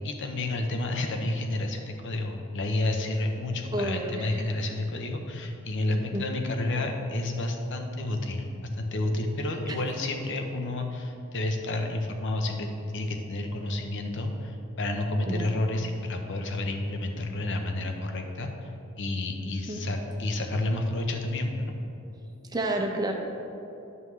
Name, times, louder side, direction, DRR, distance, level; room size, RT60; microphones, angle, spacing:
voice 1, 0.0-8.5 8.7-18.7 19.0-21.7, left 2 dB, 60° left, 4 dB, 0.7 m, -30 dB
voice 2, 3.7-4.3 5.9-6.3 15.3-15.4 19.7-19.8 22.5-23.1, right 1 dB, 20° right, 2 dB, 0.6 m, -30 dB
11.0 x 5.5 x 3.2 m, 2.8 s
head